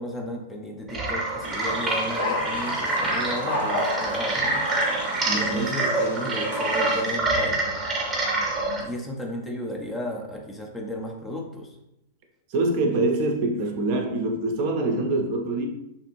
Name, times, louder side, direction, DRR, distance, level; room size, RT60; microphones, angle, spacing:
voice 1, 0.0-7.6 8.8-11.8, left 1 dB, 10° left, 1 dB, 0.4 m, -34 dB
sound 1, 0.9-8.8, right 2 dB, 15° right, 0.8 m, -26 dB
sound 2, 1.4-7.1, left 1 dB, 60° left, 0.6 m, -33 dB
voice 2, 5.3-5.7 12.5-15.7, right 2 dB, 45° right, 2 dB, 0.5 m, -25 dB
2.6 x 2.4 x 2.8 m, 0.85 s
figure-of-eight pair, 100°, 0 cm